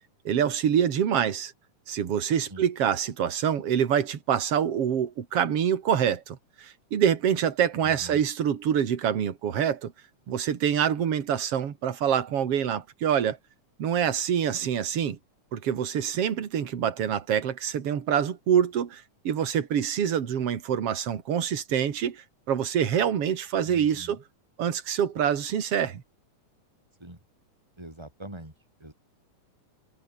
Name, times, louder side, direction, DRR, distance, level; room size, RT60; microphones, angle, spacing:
voice 1, 0.2-1.5 1.9-9.9 10.3-13.4 13.8-15.2 15.5-24.2 24.6-26.0, right 8 dB, 50° right, 2.9 m, -26 dB
voice 2, 7.8-8.2 23.7-24.2 27.0-27.2 27.8-28.5 28.8-28.9, right 1 dB, 10° right, 6.1 m, -43 dB
omnidirectional pair, 3.6 m